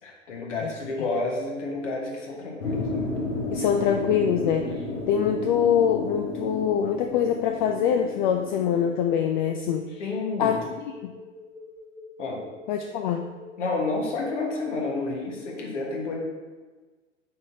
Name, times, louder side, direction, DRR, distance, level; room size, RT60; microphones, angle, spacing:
voice 1, 0.0-3.1 10.0-10.6 12.2-12.4 13.6-16.1, left 3 dB, 70° left, -1 dB, 1.5 m, -30 dB
sound 1, 1.5-15.6, left 2 dB, 5° left, 1.5 m, -45 dB
sound 2, 2.6-8.9, left 2 dB, 90° left, 1.3 m, -33 dB
voice 2, 3.5-4.7 5.1-10.0 10.4-10.6 11.0-11.1 12.7-13.3, left 8 dB, 40° left, 5 dB, 0.4 m, -24 dB
8.5 x 4.1 x 2.8 m, 1.3 s
figure-of-eight pair, 100°, 38 cm